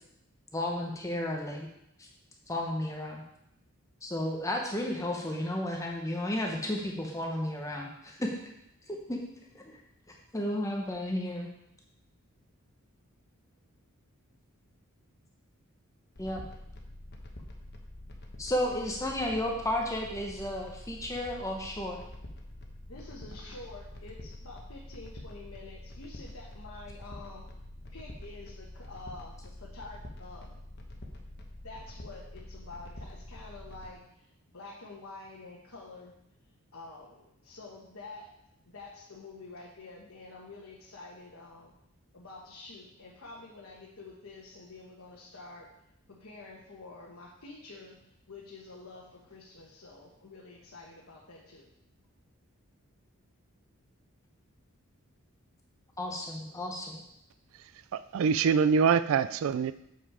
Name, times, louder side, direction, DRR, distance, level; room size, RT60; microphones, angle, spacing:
voice 1, 0.5-1.7 2.0-2.1 2.5-3.2 4.0-8.3 8.9-9.2 9.5-9.8 10.3-11.5 16.2-16.4 18.4-22.0 56.0-57.0, left 1 dB, 15° left, 0.9 m, -33 dB
sound 1, 16.2-33.9, left 1 dB, 50° left, 1.1 m, -46 dB
voice 2, 22.8-27.5 27.9-30.6 31.6-36.1 36.7-38.3 38.7-41.7 42.1-45.7 46.1-48.0 48.3-51.7, left 3 dB, 70° left, 1.2 m, -48 dB
voice 3, 57.9-59.7, right 6 dB, 65° right, 0.3 m, -24 dB
7.1 x 5.9 x 4.8 m
head